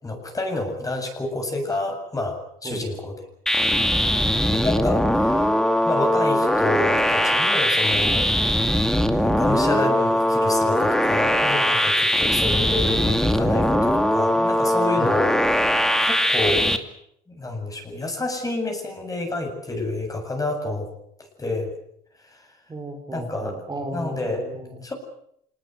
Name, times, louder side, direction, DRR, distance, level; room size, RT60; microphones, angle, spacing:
voice 1, 0.0-3.1 4.4-5.5 5.8-8.2 9.1-16.7 17.3-20.9 21.4-21.7 22.2-22.4 23.1-23.6 23.9-24.4 24.8-24.9, left 2 dB, 20° left, 4 dB, 7.8 m, -29 dB
sound 1, 3.5-16.8, equal, 5° left, 2.4 m, -20 dB
voice 2, 22.7-24.8, right 1 dB, 25° right, 4 dB, 4.8 m, -34 dB
27.0 x 20.0 x 8.2 m, 0.73 s
cardioid pair, 110°, 17 cm